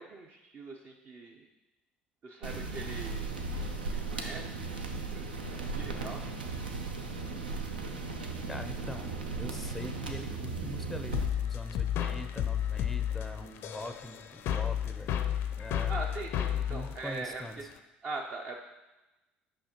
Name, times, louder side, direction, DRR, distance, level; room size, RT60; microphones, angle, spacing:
voice 1, 0.0-1.5 2.2-3.3 3.9-4.8 5.1-6.2 15.9-17.4 18.0-18.6, right 3 dB, 40° right, 0 dB, 0.7 m, -42 dB
sound 1, 2.4-11.3, right 3 dB, 80° right, 0.6 m, -36 dB
voice 2, 8.5-15.1 15.6-15.9 16.7-17.7, left 1 dB, 5° left, 8 dB, 0.5 m, -43 dB
sound 2, 11.1-17.8, left 10 dB, 50° left, 0.5 m, -32 dB
8.6 x 5.6 x 2.9 m, 1.1 s
figure-of-eight pair, 60°, 5 cm